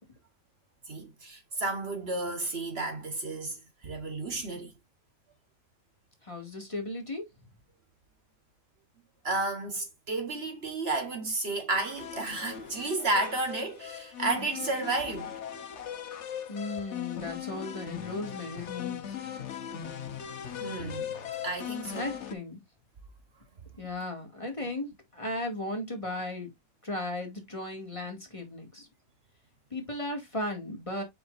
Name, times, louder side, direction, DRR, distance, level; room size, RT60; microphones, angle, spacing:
voice 1, 0.9-4.7 9.2-15.3 20.6-21.1 21.4-22.1, right 2 dB, 50° right, 1.4 m, -32 dB
voice 2, 6.2-7.3 16.5-19.2 21.9-22.6 23.7-26.5 26.8-28.9 29.7-31.0, left 2 dB, 25° left, 1.9 m, -36 dB
sound 1, 12.0-22.3, left 9 dB, 60° left, 1.2 m, -39 dB
7.2 x 5.3 x 2.5 m
omnidirectional pair, 1.4 m